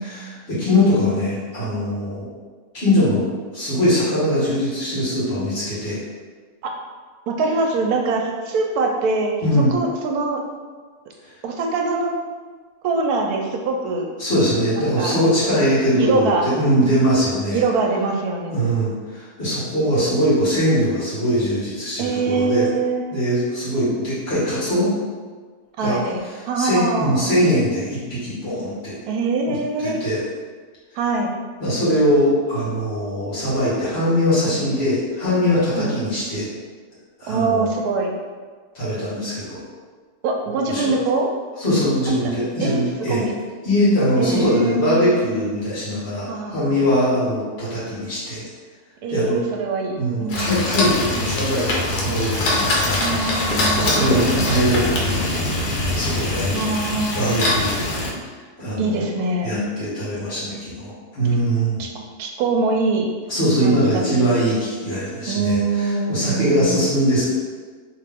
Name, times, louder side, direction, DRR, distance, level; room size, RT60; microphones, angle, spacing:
voice 1, 0.0-2.3 2.7-3.3 3.5-6.0 9.4-9.7 14.2-17.6 18.5-22.7 23.1-24.9 25.8-26.0 26.6-28.9 29.4-29.6 29.8-30.2 31.6-36.5 37.2-37.7 38.7-39.6 40.7-40.9 41.6-43.2 43.6-48.4 49.1-49.4 50.0-53.2 53.8-55.4 55.9-56.6 57.1-57.9 58.6-59.0 59.4-61.8 63.3-67.2, equal, 40° left, -10 dB, 1.8 m, -21 dB
voice 2, 7.3-9.3 9.7-10.4 11.4-12.2 12.8-14.1 14.7-15.2 16.0-16.5 16.8-17.0 17.5-18.6 22.0-23.0 25.8-26.2 26.5-27.4 29.1-30.1 31.0-31.4 35.8-35.9 37.3-38.1 40.2-41.3 42.6-43.3 44.2-45.0 46.3-47.0 49.0-50.6 53.0-54.5 56.5-57.5 58.8-59.5 61.8-61.9 62.2-63.1 63.6-64.3 65.3-66.8, right 3 dB, 75° right, 1 dB, 1.0 m, -23 dB
sound 1, 50.3-58.1, left 1 dB, 80° left, 1.3 m, -22 dB
3.3 x 2.9 x 3.4 m, 1.5 s
omnidirectional pair, 1.7 m